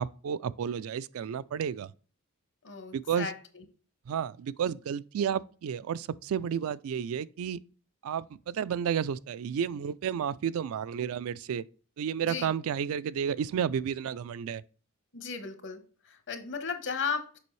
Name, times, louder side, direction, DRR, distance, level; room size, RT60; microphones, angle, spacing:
voice 1, 0.0-1.9 2.9-3.3 4.1-7.6 8.0-11.6 12.0-14.6, right 8 dB, 65° right, 0.3 m, -31 dB
voice 2, 2.6-3.6 12.2-12.5 15.1-17.4, left 5 dB, 55° left, 1.0 m, -36 dB
6.8 x 5.3 x 3.2 m
head